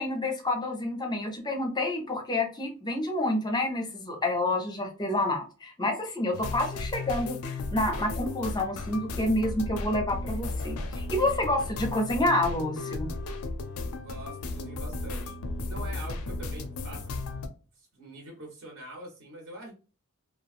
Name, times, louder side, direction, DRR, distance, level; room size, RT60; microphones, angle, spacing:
voice 1, 0.0-7.4 7.7-13.1, left 1 dB, 20° left, 4 dB, 0.5 m, -28 dB
sound 1, 6.3-17.5, left 2 dB, 80° left, 0.4 m, -35 dB
voice 2, 14.0-15.4 15.7-17.1 17.8-19.7, right 1 dB, 65° right, 0 dB, 1.1 m, -44 dB
3.0 x 2.3 x 2.4 m, 0.34 s
head